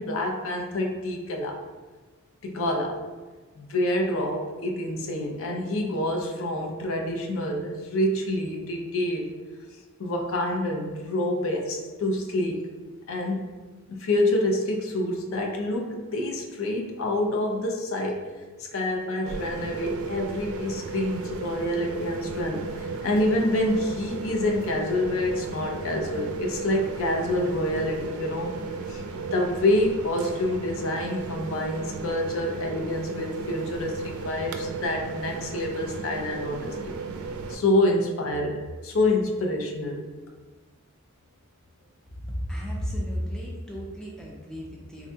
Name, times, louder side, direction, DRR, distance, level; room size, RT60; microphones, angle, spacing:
voice 1, 0.0-1.6 2.4-3.0 3.6-9.3 10.0-12.6 13.1-13.5 13.9-18.2 18.6-28.6 28.9-36.8 37.5-40.0, left 1 dB, 70° left, 1 dB, 0.5 m, -27 dB
sound 1, 19.3-37.5, right 4 dB, 85° right, 0.3 m, -35 dB
voice 2, 42.2-45.1, equal, 5° left, -3 dB, 0.4 m, -33 dB
3.6 x 2.2 x 2.7 m, 1.3 s
head